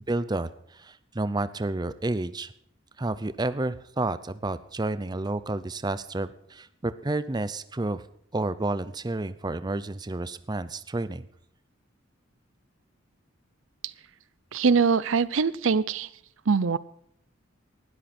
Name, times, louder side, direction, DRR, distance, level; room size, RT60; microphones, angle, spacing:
voice 1, 0.1-2.5 3.0-8.0 8.3-11.3, right 2 dB, 20° right, 14 dB, 0.6 m, -30 dB
voice 2, 14.5-16.1 16.5-16.8, right 5 dB, 75° right, 18 dB, 0.6 m, -23 dB
19.5 x 13.0 x 4.3 m, 0.69 s
head